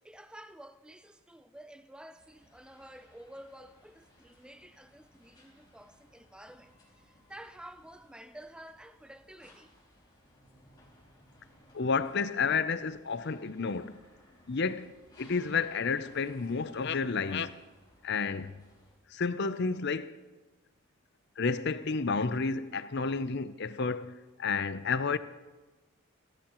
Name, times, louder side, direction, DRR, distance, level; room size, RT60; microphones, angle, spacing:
voice 1, 0.0-9.7, right 1 dB, 5° right, 0.5 m, -51 dB
sound 1, 2.2-18.9, left 1 dB, 20° left, 4.1 m, -61 dB
voice 2, 11.7-14.0 14.5-14.9 15.2-17.5 18.0-18.6 19.1-20.2 21.4-25.2, left 5 dB, 50° left, 0.6 m, -31 dB
28.0 x 13.5 x 3.0 m
head